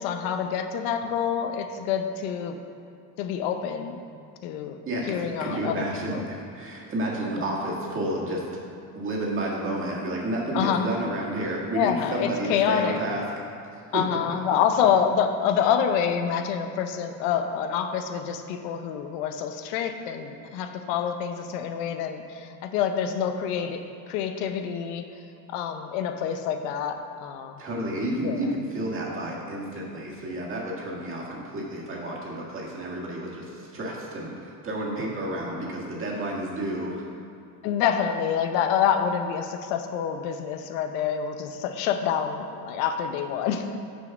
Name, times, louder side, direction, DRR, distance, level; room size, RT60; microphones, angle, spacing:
voice 1, 0.0-2.6 3.2-4.0 4.4-4.8 5.1-6.2 10.5-10.9 11.7-13.0 13.9-25.1 25.5-27.6 28.2-28.4 37.6-43.8, left 8 dB, 90° left, 7 dB, 0.7 m, -27 dB
voice 2, 4.9-8.4 8.9-13.2 13.7-14.2 27.6-37.0, right 1 dB, 35° right, -3 dB, 1.8 m, -31 dB
6.4 x 5.1 x 5.9 m, 2.5 s
cardioid pair, 120°, 37 cm